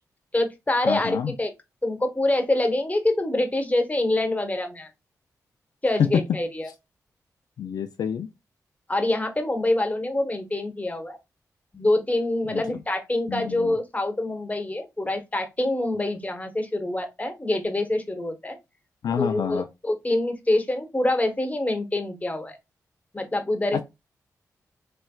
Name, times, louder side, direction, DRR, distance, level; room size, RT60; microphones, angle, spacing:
voice 1, 0.3-1.5 1.8-4.9 5.8-6.7 8.9-11.2 11.7-18.6 19.2-22.6 23.1-23.8, left 1 dB, 20° left, 1.1 m, -25 dB
voice 2, 0.8-1.3 6.0-6.1 7.6-8.3 12.5-12.6 13.3-13.7 19.0-19.7 23.7-23.8, left 8 dB, 75° left, 0.4 m, -27 dB
4.1 x 3.1 x 2.3 m
cardioid pair, 50°, 7 cm